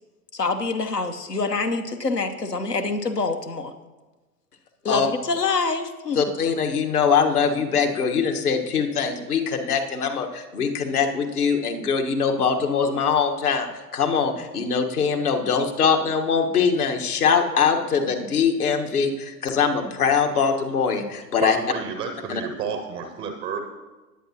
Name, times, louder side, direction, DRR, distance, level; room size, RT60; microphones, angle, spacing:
voice 1, 0.3-3.7 4.8-6.2, left 4 dB, 90° left, 7 dB, 0.9 m, -26 dB
voice 2, 6.1-13.7 13.9-21.6 22.3-22.4, left 6 dB, 70° left, 4 dB, 1.4 m, -22 dB
voice 3, 21.4-23.6, right 6 dB, 15° right, 5 dB, 0.4 m, -30 dB
19.5 x 8.4 x 2.9 m, 1.2 s
figure-of-eight pair, 100°, 47 cm